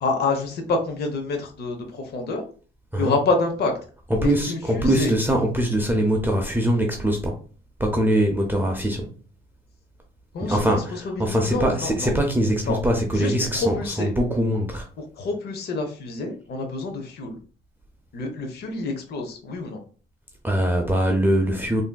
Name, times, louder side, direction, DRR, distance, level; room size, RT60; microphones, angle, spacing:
voice 1, 0.0-2.4 3.0-3.7 4.2-5.2 10.3-12.1 12.7-12.8 13.1-14.1 15.2-17.4 18.1-19.8, left 3 dB, 55° left, 0.7 m, -27 dB
voice 2, 4.1-7.4 7.8-9.1 10.4-14.9 20.4-21.8, equal, 10° right, 0.5 m, -22 dB
3.5 x 2.6 x 2.2 m
cardioid pair, 90°, 20 cm